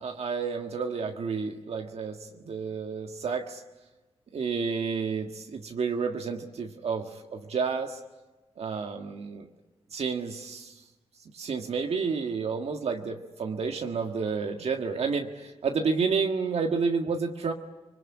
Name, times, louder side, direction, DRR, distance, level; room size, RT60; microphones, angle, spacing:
voice 1, 0.0-3.6 4.3-8.0 8.6-9.5 9.9-10.8 11.3-17.5, right 5 dB, 70° right, 4 dB, 1.7 m, -30 dB
26.0 x 21.5 x 9.9 m, 1.1 s
cardioid pair, 75°, 11 cm